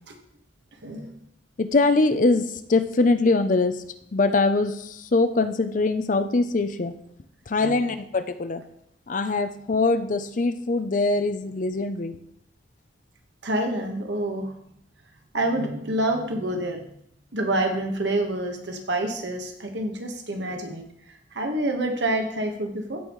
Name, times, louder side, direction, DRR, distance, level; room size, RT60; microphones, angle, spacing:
voice 1, 1.6-2.4 2.7-3.8 4.1-6.9 7.5-8.6 9.1-12.1, left 3 dB, 45° left, 11 dB, 0.5 m, -22 dB
voice 2, 13.4-14.5 15.3-16.9 17.3-23.0, right 1 dB, 75° right, 3 dB, 1.4 m, -27 dB
15.5 x 5.4 x 3.1 m, 0.72 s
head